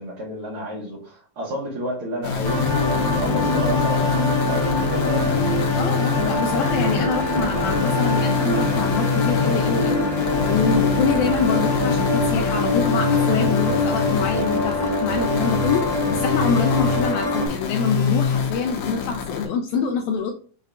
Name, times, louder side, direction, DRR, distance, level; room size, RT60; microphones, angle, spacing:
voice 1, 0.0-5.4, equal, 80° right, -4 dB, 1.2 m, -31 dB
sound 1, 2.2-19.4, left 6 dB, 70° left, 2.1 m, -25 dB
sound 2, 2.4-17.5, left 2 dB, 25° left, 0.8 m, -23 dB
voice 2, 5.7-20.3, left 6 dB, 90° left, 3 dB, 1.7 m, -25 dB
6.5 x 2.3 x 3.5 m, 0.43 s
omnidirectional pair, 4.0 m